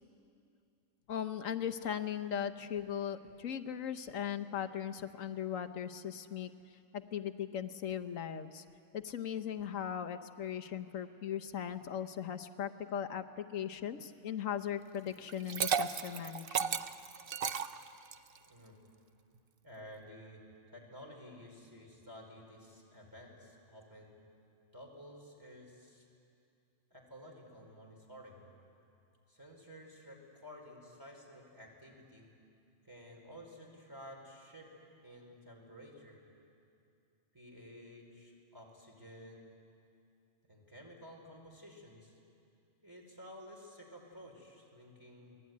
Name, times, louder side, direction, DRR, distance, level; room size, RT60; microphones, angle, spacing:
voice 1, 1.1-6.5 6.9-8.6 8.9-16.8, left 9 dB, 90° left, 9 dB, 1.4 m, -38 dB
Liquid, 15.3-18.4, right 7 dB, 50° right, 0.9 m, -34 dB
voice 2, 19.6-20.4 20.7-24.2 24.7-26.1 26.9-28.4 29.3-32.2 32.8-34.7 35.0-36.2 37.3-39.4 40.5-42.1 42.8-45.3, equal, 15° right, 0 dB, 4.8 m, -53 dB
29.0 x 20.5 x 9.5 m, 2.6 s
omnidirectional pair, 1.3 m